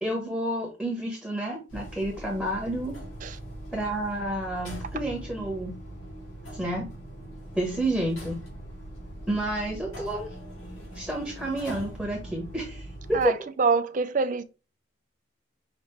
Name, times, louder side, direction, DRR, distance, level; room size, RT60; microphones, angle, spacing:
voice 1, 0.0-3.0 3.7-5.7 6.5-6.9 7.5-8.4 9.3-10.3 10.9-13.3, right 1 dB, ahead, 1.2 m, -30 dB
sound 1, 1.7-13.3, right 1 dB, 80° left, 2.4 m, -41 dB
voice 2, 13.1-14.4, right 4 dB, 40° right, 0.4 m, -25 dB
5.8 x 2.9 x 3.2 m
head